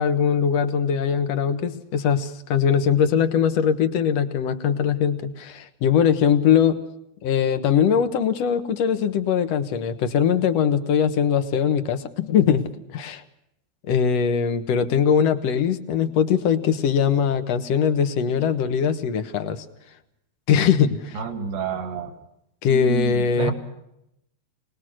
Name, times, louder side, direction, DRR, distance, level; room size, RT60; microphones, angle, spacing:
voice 1, 0.0-6.8 7.2-12.6 12.9-13.2 13.9-19.6 20.5-21.2 22.6-23.5, left 7 dB, 65° left, 9 dB, 1.7 m, -21 dB
voice 2, 21.1-22.1 22.7-23.5, right 6 dB, 85° right, 6 dB, 4.7 m, -29 dB
26.0 x 20.0 x 6.3 m, 0.79 s
omnidirectional pair, 4.6 m